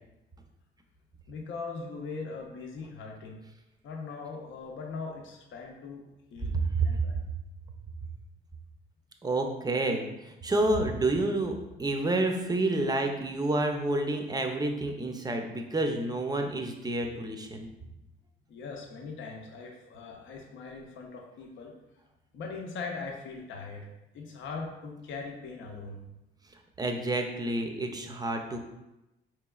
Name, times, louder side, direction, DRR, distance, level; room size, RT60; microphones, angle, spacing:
voice 1, 1.3-3.4 3.8-6.0 6.3-6.6 6.8-7.2 18.5-21.7 22.3-23.9 24.1-26.0, left 4 dB, 75° left, 1 dB, 0.7 m, -40 dB
voice 2, 6.5-6.9 9.2-17.7 26.8-28.6, right 2 dB, 20° right, 4 dB, 0.5 m, -29 dB
4.5 x 3.0 x 2.3 m, 0.95 s
cardioid pair, 90°, 20 cm